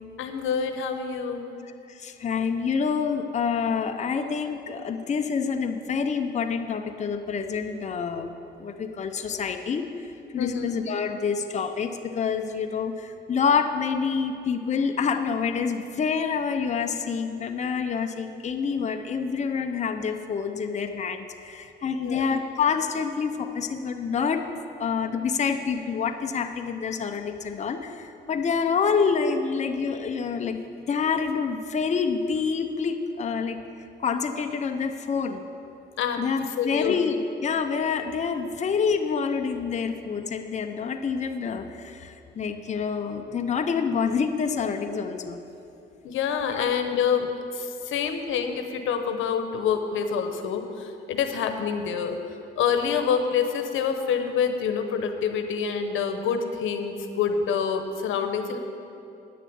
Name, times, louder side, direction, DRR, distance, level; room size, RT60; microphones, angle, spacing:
voice 1, 0.2-1.4 10.4-10.8 21.9-22.2 36.0-36.2 36.6-36.9 46.0-52.2 52.6-58.6, left 7 dB, 80° left, 7 dB, 0.9 m, -27 dB
voice 2, 1.9-8.3 8.6-9.9 10.3-24.4 24.8-30.6 30.9-33.6 34.0-35.4 36.2-45.4 46.5-46.6, left 6 dB, 35° left, 5 dB, 0.7 m, -27 dB
9.5 x 6.8 x 8.6 m, 2.7 s
cardioid pair, 90°, 20 cm